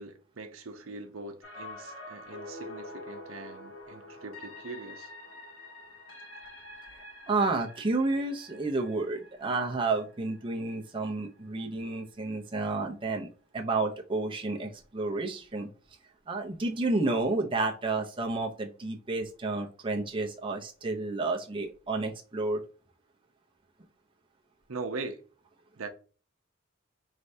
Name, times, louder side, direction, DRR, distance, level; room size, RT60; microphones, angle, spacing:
voice 1, 0.0-5.1 24.7-25.2 25.8-25.9, right 3 dB, 75° right, 0.7 m, -41 dB
sound 1, 1.4-11.4 11.8-11.9, left 2 dB, 70° left, 1.6 m, -47 dB
voice 2, 7.3-15.7 16.3-22.6, right 3 dB, 25° right, 0.6 m, -31 dB
4.7 x 3.2 x 2.7 m
head